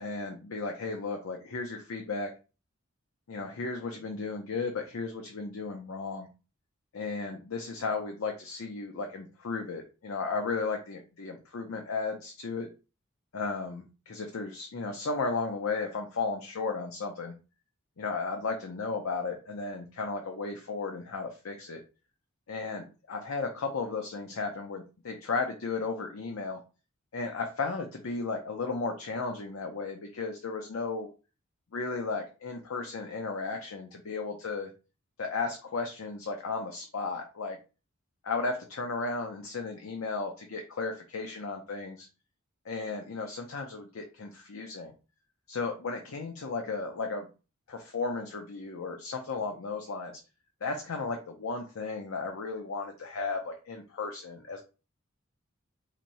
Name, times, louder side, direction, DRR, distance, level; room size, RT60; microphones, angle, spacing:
voice 1, 0.0-2.3 3.3-6.3 6.9-12.7 13.3-17.3 18.0-21.8 22.5-26.6 27.1-31.1 31.7-34.7 35.2-37.6 38.2-42.1 42.7-44.9 45.5-47.3 47.7-50.2 50.6-54.6, left 4 dB, 80° left, 3 dB, 0.6 m, -34 dB
4.3 x 2.9 x 2.6 m, 0.32 s
head